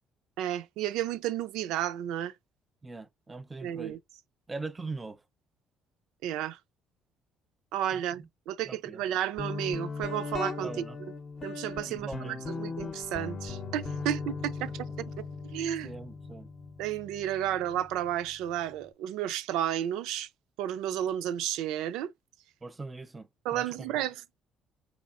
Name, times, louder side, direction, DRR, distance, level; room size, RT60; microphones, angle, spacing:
voice 1, 0.4-2.3 3.6-4.0 6.2-6.6 7.7-10.9 11.4-15.1 15.4-15.9 16.8-20.3 20.6-22.1 23.4-24.2, right 11 dB, 85° right, 0.4 m, -32 dB
voice 2, 2.8-4.0 4.5-5.2 7.9-8.3 8.6-9.0 10.6-11.0 11.8-12.4 15.8-16.5 22.6-23.9, right 3 dB, 20° right, 0.5 m, -41 dB
Guitar, 9.4-18.9, left 4 dB, 35° left, 0.6 m, -39 dB
4.2 x 3.4 x 2.4 m
cardioid pair, 115°, 0 cm